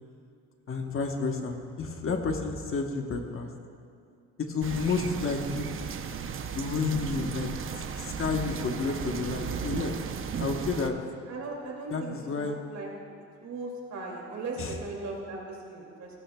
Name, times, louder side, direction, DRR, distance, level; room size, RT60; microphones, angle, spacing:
voice 1, 0.7-3.5 4.4-5.7 6.5-7.6 8.0-9.9 10.4-11.0 11.9-12.6 14.6-14.8, left 4 dB, 45° left, 3 dB, 1.2 m, -31 dB
sound 1, 4.6-10.9, right 7 dB, 45° right, 0.7 m, -35 dB
voice 2, 11.3-12.9 13.4-16.1, right 3 dB, 65° right, -2 dB, 2.6 m, -38 dB
18.0 x 12.0 x 2.3 m, 2.4 s
cardioid pair, 90°, 30 cm